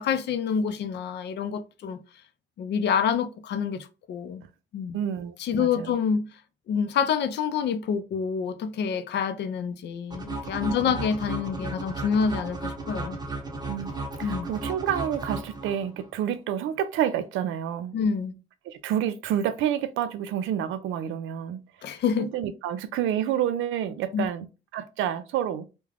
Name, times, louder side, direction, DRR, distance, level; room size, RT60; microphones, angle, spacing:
voice 1, 0.0-2.0 2.6-4.4 4.7-5.0 5.4-6.3 6.7-13.2 14.2-14.5 17.9-18.3 21.8-22.3 24.1-24.3, left 6 dB, 60° left, 0.4 m, -27 dB
voice 2, 4.9-5.9 10.6-11.0 13.7-13.9 14.2-18.0 18.7-21.9 22.2-24.5 24.7-25.7, right 10 dB, 80° right, 0.4 m, -29 dB
sound 1, 10.1-16.1, right 3 dB, 20° right, 0.7 m, -34 dB
2.4 x 2.2 x 3.2 m
cardioid pair, 90°, 20 cm